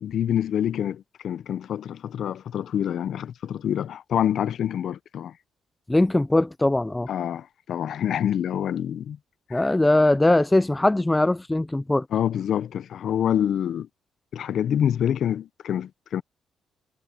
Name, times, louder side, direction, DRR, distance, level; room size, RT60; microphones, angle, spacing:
voice 1, 0.0-5.3 7.1-9.2 9.5-9.8 12.1-13.9 14.3-16.2, left 9 dB, 65° left, 0.7 m, -26 dB
voice 2, 5.9-7.1 9.5-12.1, left 2 dB, 10° left, 0.4 m, -21 dB
cardioid pair, 90°, 0 cm